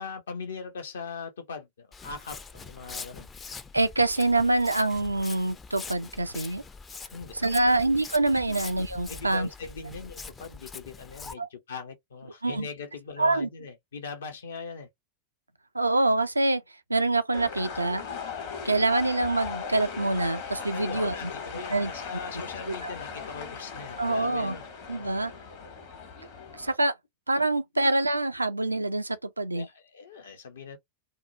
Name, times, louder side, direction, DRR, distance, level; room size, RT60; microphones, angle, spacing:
voice 1, 0.0-3.3 7.1-7.7 8.5-8.6 9.1-14.9 20.7-25.1 29.5-30.8, left 5 dB, 65° left, 0.7 m, -40 dB
Walk footsteps, 1.9-11.3, left 4 dB, 20° left, 0.4 m, -43 dB
voice 2, 3.7-6.6 7.4-9.5 11.4-11.5 12.4-12.7 13.2-13.5 15.7-16.6 16.9-18.0 18.6-21.1 21.7-21.9 22.7-22.9 24.0-24.6 24.9-25.3 26.5-26.9 27.3-29.7, right 2 dB, 85° right, 0.3 m, -25 dB
sound 1, 17.3-26.7, left 6 dB, 50° left, 1.1 m, -38 dB
2.6 x 2.0 x 2.6 m
figure-of-eight pair, 90°, 0 cm